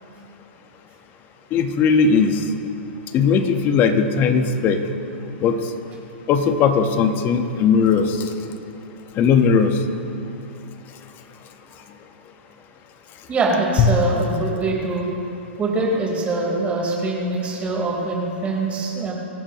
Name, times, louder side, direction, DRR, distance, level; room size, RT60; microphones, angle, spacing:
voice 1, 1.5-2.4 3.1-4.8 5.4-5.6 6.3-8.3 9.2-9.7 13.8-13.9, left 6 dB, 30° left, 6 dB, 1.4 m, -18 dB
voice 2, 13.3-15.1 15.6-19.1, right 3 dB, 20° right, -2 dB, 4.5 m, -23 dB
25.5 x 14.5 x 3.2 m, 2.9 s
hypercardioid pair, 125°, 7 cm